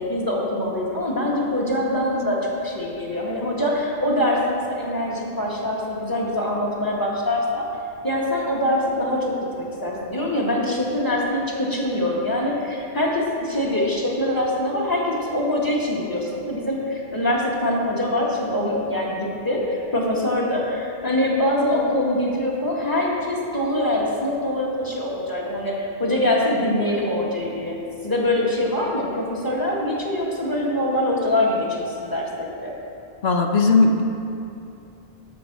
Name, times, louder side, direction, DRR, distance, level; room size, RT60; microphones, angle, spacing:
voice 1, 0.0-7.7 8.0-32.7, left 1 dB, 20° left, -4 dB, 1.8 m, -24 dB
voice 2, 33.2-34.0, left 3 dB, 75° left, 3 dB, 1.2 m, -17 dB
12.5 x 6.0 x 6.0 m, 2.7 s
omnidirectional pair, 1.1 m